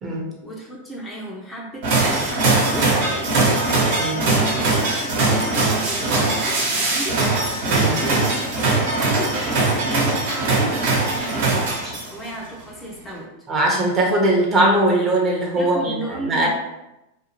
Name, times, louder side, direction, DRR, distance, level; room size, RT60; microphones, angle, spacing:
voice 1, 0.4-7.2 7.8-13.3 15.5-16.5, right 1 dB, 15° left, -4 dB, 0.7 m, -34 dB
sound 1, 1.8-12.3, right 3 dB, 65° right, 1.0 m, -21 dB
voice 2, 7.7-8.0 13.5-16.5, right 1 dB, 25° right, -2 dB, 0.8 m, -20 dB
2.6 x 2.3 x 2.9 m, 0.92 s
hypercardioid pair, 115°, 0 cm